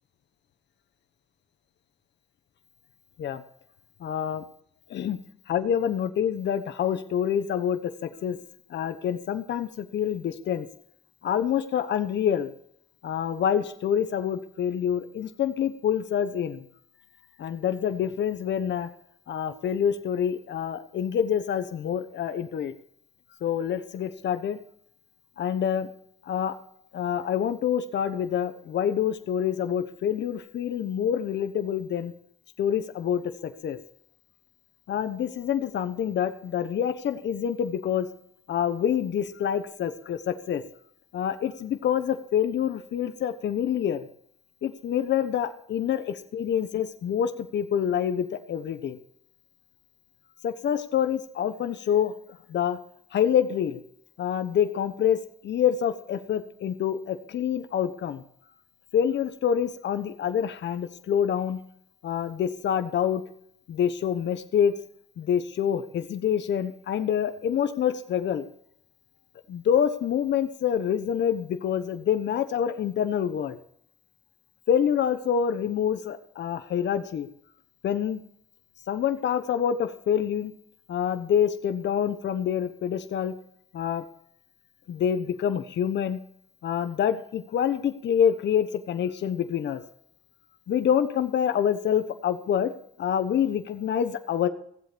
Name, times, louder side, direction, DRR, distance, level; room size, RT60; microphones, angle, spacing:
voice 1, 4.0-4.4 4.9-5.2 5.5-8.4 8.7-10.7 11.2-12.5 13.0-16.6 17.4-18.9 19.3-22.7 23.4-24.6 25.4-25.9 26.3-26.5 26.9-32.1 32.6-33.8 34.9-38.1 38.5-40.6 41.1-44.1 44.6-49.0 50.4-52.1 52.5-52.8 53.1-53.8 54.2-55.2 55.4-58.2 58.9-61.6 62.0-63.2 63.7-64.7 65.2-68.4 69.5-73.6 74.7-77.3 77.8-78.2 78.9-80.5 80.9-83.3 83.7-84.0 84.9-86.2 86.6-89.8 90.7-92.7 93.0-94.5, left 9 dB, 65° left, 9 dB, 1.1 m, -26 dB
15.5 x 8.0 x 6.9 m, 0.68 s
cardioid pair, 90°, 20 cm